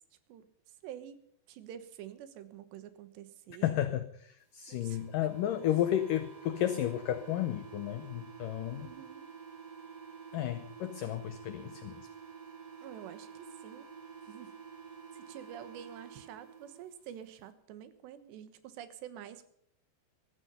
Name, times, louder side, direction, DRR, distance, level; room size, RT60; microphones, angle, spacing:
voice 1, 0.8-3.8 4.7-5.3 8.8-9.3 12.8-13.9 14.2-14.6 15.1-19.4, right 10 dB, 80° right, 13 dB, 3.4 m, -48 dB
voice 2, 3.6-8.9 10.3-12.1, left 12 dB, 85° left, 10 dB, 1.9 m, -32 dB
sound 1, 4.7-16.8, right 6 dB, 30° right, 2.1 m, -49 dB
15.5 x 13.5 x 5.5 m, 0.66 s
omnidirectional pair, 4.9 m